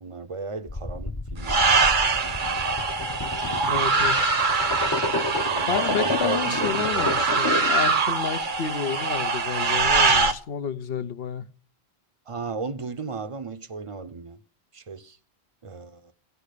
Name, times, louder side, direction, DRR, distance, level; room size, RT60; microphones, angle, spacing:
voice 1, 0.0-2.8 3.3-4.0 5.5-7.2 12.3-14.4 14.7-15.2 15.6-16.1, right 4 dB, 35° right, 0.7 m, -36 dB
sound 1, 0.7-7.8, left 2 dB, 25° left, 0.7 m, -31 dB
sound 2, 1.4-10.3, right 4 dB, 55° right, 1.0 m, -23 dB
voice 2, 3.7-4.2 5.7-11.5, left 7 dB, 70° left, 1.0 m, -30 dB
17.0 x 6.9 x 6.7 m
omnidirectional pair, 1.0 m